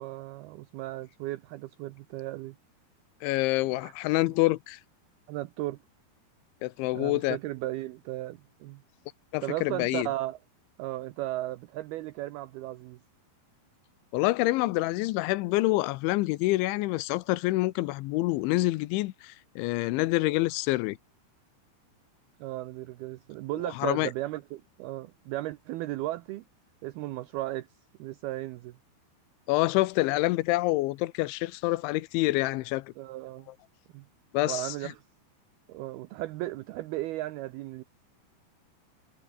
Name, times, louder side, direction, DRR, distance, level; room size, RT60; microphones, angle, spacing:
voice 1, 0.0-2.6 3.7-3.9 5.3-5.8 6.9-8.8 9.4-10.4 10.8-13.0 22.4-26.4 26.8-27.7 28.0-28.8 33.0-33.5 33.9-34.1 34.4-35.0 35.7-37.8, right 16 dB, 85° right, 2.2 m, -35 dB
voice 2, 3.2-4.8 6.6-7.4 9.3-10.1 14.1-21.0 23.8-24.1 29.5-32.9 34.3-34.7, left 19 dB, 85° left, 3.1 m, -27 dB
omnidirectional pair, 5.4 m